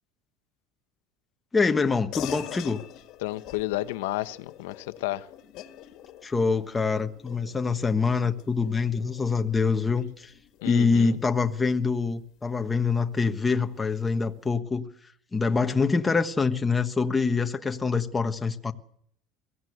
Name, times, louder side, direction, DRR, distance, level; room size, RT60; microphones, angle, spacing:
voice 1, 1.5-2.8 6.2-10.3 10.6-14.9 15.3-18.7, left 4 dB, 15° left, 1.3 m, -25 dB
sound 1, 2.1-12.0, left 12 dB, 55° left, 1.9 m, -44 dB
voice 2, 3.2-5.3 10.6-11.2, left 17 dB, 90° left, 1.2 m, -31 dB
23.0 x 16.0 x 8.0 m
supercardioid pair, 135°, 0 cm